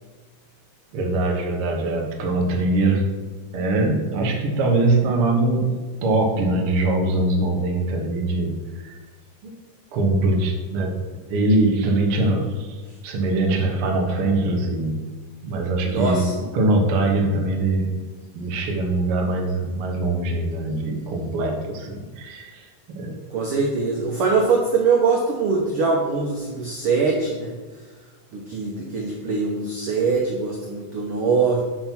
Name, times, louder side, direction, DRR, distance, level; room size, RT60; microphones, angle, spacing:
voice 1, 0.9-3.1 3.5-8.6 8.8-8.9 9.4-9.5 9.9-10.9 11.3-12.7 13.0-15.0 15.4-16.3 16.5-17.9 18.3-23.2, right 2 dB, 55° right, 0 dB, 1.7 m, -22 dB
voice 2, 15.8-16.3 23.3-27.5 28.3-31.6, right 4 dB, 75° right, -1 dB, 1.3 m, -22 dB
7.3 x 4.3 x 6.0 m, 1.3 s
omnidirectional pair, 3.7 m